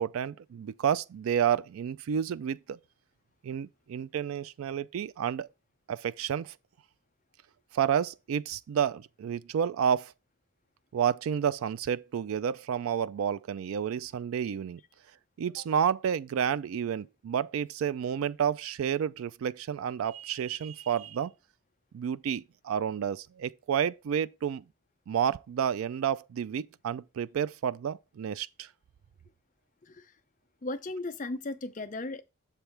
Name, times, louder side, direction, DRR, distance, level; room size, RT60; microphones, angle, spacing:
voice 1, 0.0-2.8 3.4-5.5 5.9-6.5 7.7-10.1 10.9-14.8 15.4-21.3 21.9-24.6 25.1-28.7, right 8 dB, 85° right, 0.3 m, -30 dB
voice 2, 30.6-32.2, left 2 dB, 35° left, 0.5 m, -36 dB
7.1 x 3.4 x 5.7 m
head